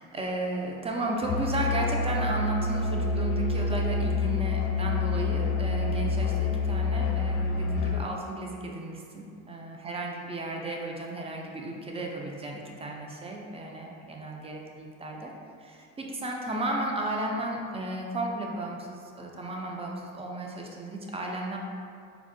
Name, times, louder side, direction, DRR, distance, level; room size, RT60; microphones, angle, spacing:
voice 1, 0.0-15.3 15.6-21.6, right 1 dB, 15° right, 0 dB, 0.3 m, -34 dB
Musical instrument, 1.2-8.1, left 3 dB, 65° left, 0.6 m, -27 dB
4.4 x 2.0 x 2.5 m, 2.4 s
supercardioid pair, 95°, 36 cm